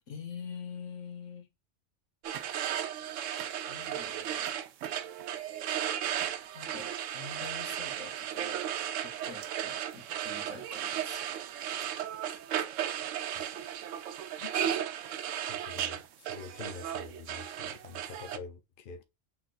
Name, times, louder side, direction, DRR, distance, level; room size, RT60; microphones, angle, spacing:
voice 1, 0.1-1.5 2.9-3.2 3.7-4.6 6.5-8.6 9.0-11.6, left 6 dB, 80° left, 1.4 m, -46 dB
sound 1, 2.2-18.4, right 10 dB, 80° right, 0.9 m, -35 dB
voice 2, 13.1-13.4 14.4-14.5 15.5-19.0, left 5 dB, 50° left, 0.8 m, -47 dB
5.9 x 3.6 x 2.5 m
omnidirectional pair, 1.3 m